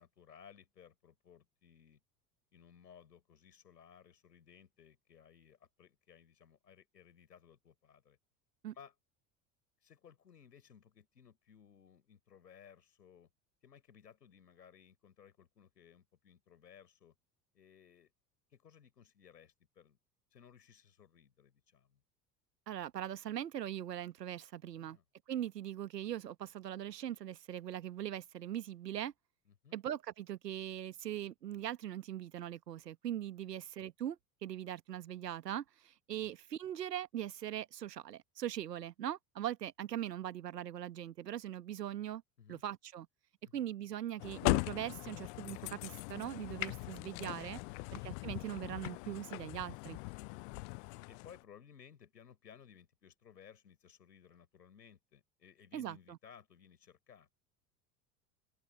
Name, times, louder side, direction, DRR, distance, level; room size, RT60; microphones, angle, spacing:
voice 1, 0.0-2.0 2.5-8.2 8.7-8.9 9.8-13.3 13.6-17.1 17.5-18.1 18.5-20.0 20.3-22.0 24.7-25.0 29.5-29.8 36.2-36.3 42.4-42.6 43.4-43.6 47.7-47.9 51.1-57.4, left 7 dB, 80° left, 6.2 m, -60 dB
voice 2, 22.7-25.0 25.3-29.1 29.7-42.2 42.5-43.1 43.5-47.6 47.9-50.0 55.7-56.2, right 11 dB, 80° right, 1.3 m, -41 dB
sound 1, 44.2-51.4, left 35 dB, 50° left, 0.6 m, -39 dB
open air
figure-of-eight pair, 75°, 48 cm